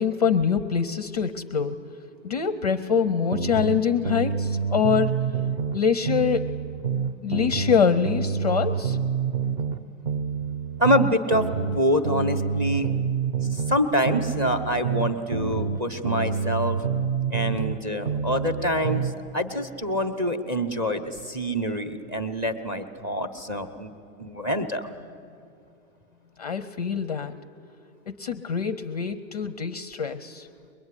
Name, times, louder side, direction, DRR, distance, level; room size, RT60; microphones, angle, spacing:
voice 1, 0.0-1.8 2.2-5.1 5.7-6.5 7.2-9.0 26.4-27.4 28.1-30.5, left 6 dB, 30° left, 12 dB, 0.5 m, -24 dB
sound 1, 3.3-5.8 6.1-9.8 10.1-13.8 14.1-17.8 18.1-19.1, right 6 dB, 40° right, 0.9 m, -27 dB
voice 2, 10.8-11.5 11.7-12.9 13.4-16.8 17.3-23.9 24.2-24.9, equal, 15° right, 8 dB, 0.8 m, -26 dB
22.5 x 22.0 x 9.8 m, 2.6 s
hypercardioid pair, 175°, 40 cm